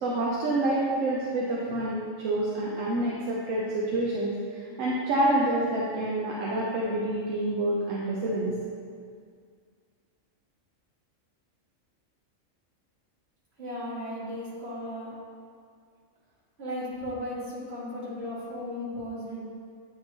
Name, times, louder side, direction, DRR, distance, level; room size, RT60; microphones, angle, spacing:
voice 1, 0.0-8.5, right 1 dB, 75° right, -5 dB, 1.1 m, -27 dB
voice 2, 13.6-15.1 16.6-19.5, left 1 dB, 50° right, -8 dB, 2.0 m, -36 dB
9.1 x 4.4 x 2.9 m, 2.1 s
omnidirectional pair, 1.4 m